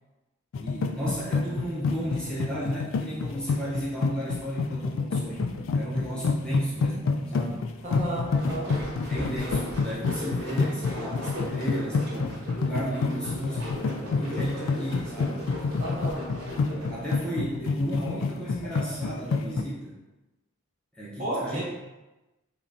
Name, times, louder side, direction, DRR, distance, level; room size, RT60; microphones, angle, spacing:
sound 1, 0.5-19.6, left 4 dB, 75° left, 0.3 m, -28 dB
voice 1, 0.6-7.6 9.1-15.4 16.6-20.0 20.9-21.6, right 1 dB, 5° left, -8 dB, 0.8 m, -34 dB
voice 2, 7.8-8.7 15.8-16.3 21.2-21.6, right 1 dB, 35° right, -5 dB, 0.8 m, -32 dB
sound 2, 8.1-17.0, left 1 dB, 55° right, 1.3 m, -38 dB
5.5 x 2.2 x 2.6 m, 1.1 s
head